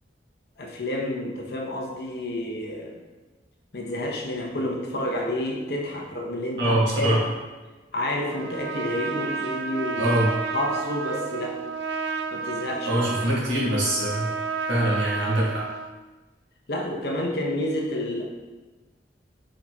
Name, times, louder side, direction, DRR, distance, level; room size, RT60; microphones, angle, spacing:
voice 1, 0.6-3.0 3.7-7.2 7.9-10.1 10.5-11.6 12.3-13.0 13.4-13.5 16.7-18.2, left 1 dB, 65° left, -1 dB, 0.7 m, -29 dB
voice 2, 6.6-7.2 10.0-10.3 12.8-14.3 14.7-15.6, right 1 dB, 90° right, -6 dB, 1.4 m, -23 dB
Trumpet, 8.3-16.0, right 5 dB, 70° right, 0.3 m, -31 dB
4.8 x 4.1 x 2.2 m, 1.2 s
head